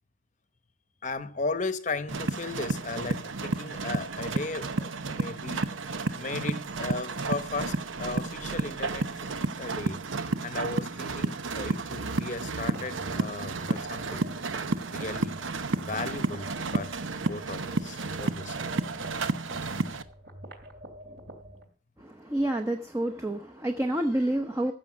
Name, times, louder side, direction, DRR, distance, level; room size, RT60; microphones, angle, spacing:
voice 1, 1.0-5.7 6.2-10.0 10.4-14.3 14.9-15.4 15.8-17.0 17.3-18.6, left 3 dB, 40° left, 0.9 m, -36 dB
sound 1, 2.1-20.0, right 3 dB, 80° right, 0.9 m, -32 dB
sound 2, 12.7-21.7, right 1 dB, 55° right, 2.6 m, -46 dB
voice 2, 22.0-24.7, right 1 dB, 15° right, 0.8 m, -28 dB
15.0 x 6.9 x 6.0 m
head